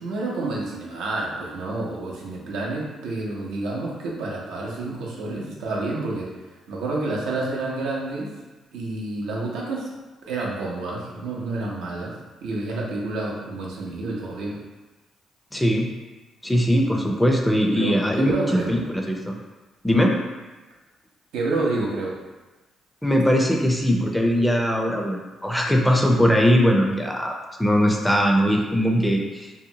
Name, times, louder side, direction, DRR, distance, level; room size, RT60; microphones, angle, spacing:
voice 1, 0.0-6.3 6.7-8.3 8.7-9.9 10.3-12.1 12.4-14.6 17.7-18.7 21.3-22.1, right 2 dB, 85° right, -3 dB, 0.6 m, -29 dB
voice 2, 15.5-15.9 16.4-19.4 19.8-20.1 23.0-27.3 27.6-29.5, equal, 5° left, 0 dB, 0.4 m, -20 dB
2.7 x 2.1 x 2.7 m, 1.2 s
cardioid pair, 90°, 0 cm